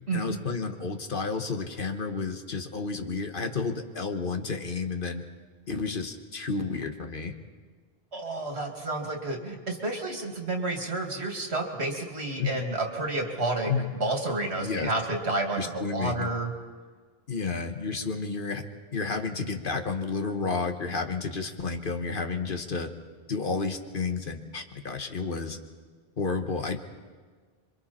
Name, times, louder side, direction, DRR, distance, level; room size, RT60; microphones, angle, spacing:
voice 1, 0.1-5.2 5.7-7.3 12.4-12.6 13.7-13.9 14.6-14.9 15.6-16.3 17.3-18.6 18.9-22.9 23.3-25.6 26.2-26.8, left 4 dB, 55° left, 6 dB, 1.4 m, -31 dB
voice 2, 8.1-13.7 14.0-16.5, right 2 dB, 80° right, 2 dB, 2.7 m, -30 dB
27.0 x 24.0 x 4.3 m, 1.5 s
omnidirectional pair, 1.1 m